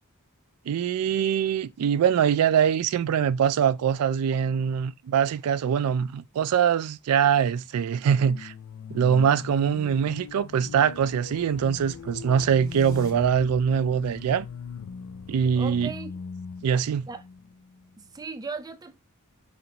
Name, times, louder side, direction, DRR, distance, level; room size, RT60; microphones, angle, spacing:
voice 1, 0.7-8.5 8.9-14.4 15.3-15.9 16.6-17.1, right 8 dB, 85° right, 0.3 m, -23 dB
sound 1, 8.2-18.1, left 6 dB, 75° left, 0.4 m, -41 dB
sound 2, 10.2-15.8, right 1 dB, 15° left, 1.2 m, -52 dB
voice 2, 15.6-16.1 17.1-17.2 18.0-19.0, right 4 dB, 15° right, 0.4 m, -37 dB
5.1 x 2.6 x 2.8 m
head